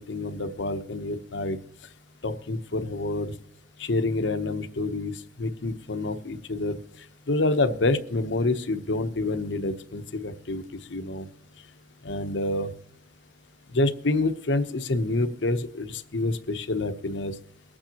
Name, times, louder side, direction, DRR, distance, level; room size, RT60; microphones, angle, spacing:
voice 1, 0.1-1.6 2.2-3.3 3.8-6.8 7.3-10.6 10.9-11.3 12.0-12.7 13.7-17.3, left 2 dB, 85° left, 10 dB, 0.9 m, -27 dB
23.0 x 8.8 x 2.9 m, 0.71 s
head